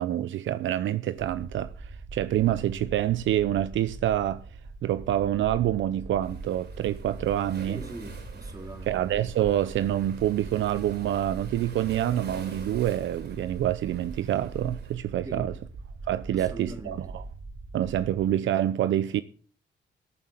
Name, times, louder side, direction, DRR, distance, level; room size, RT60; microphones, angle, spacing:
voice 1, 0.0-4.4 4.8-7.8 8.9-15.5 16.1-17.2 17.7-19.2, right 12 dB, 75° right, 0.7 m, -27 dB
sound 1, 1.2-18.3, right 3 dB, 35° right, 4.2 m, -42 dB
Waves surf, 6.2-14.9, right 5 dB, 55° right, 5.5 m, -47 dB
voice 2, 7.7-9.0 15.2-15.6 16.3-17.1, right 2 dB, 15° right, 2.8 m, -41 dB
14.0 x 7.6 x 7.6 m
cardioid pair, 90°, 20 cm